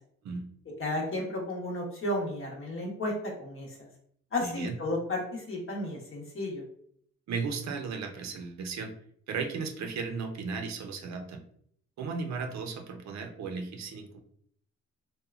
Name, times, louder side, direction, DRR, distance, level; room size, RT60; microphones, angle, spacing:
voice 1, 0.8-3.1 3.4-3.7 4.3-6.6, left 1 dB, 45° left, 0 dB, 0.9 m, -33 dB
voice 2, 4.4-4.8 7.3-8.9 9.3-11.4 12.0-14.2, right 4 dB, 65° right, 5 dB, 0.5 m, -35 dB
2.8 x 2.2 x 2.4 m, 0.66 s
cardioid pair, 95°, 29 cm